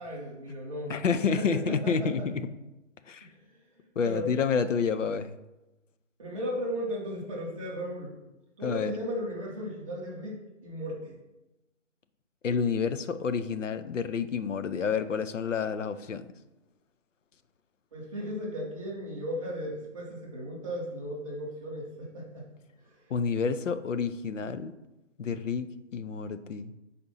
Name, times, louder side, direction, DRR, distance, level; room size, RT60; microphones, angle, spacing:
voice 1, 0.0-0.9 1.3-2.2 3.2-3.3 3.8-4.5 6.2-8.1 8.6-11.2 17.9-22.4, equal, ahead, -6 dB, 0.9 m, -36 dB
voice 2, 0.9-2.5 3.1-3.3 4.0-5.4 8.6-8.9 12.4-16.3 23.1-24.7 25.2-26.7, left 6 dB, 80° left, 12 dB, 0.6 m, -29 dB
5.1 x 4.2 x 5.5 m, 0.99 s
hypercardioid pair, 175°, 37 cm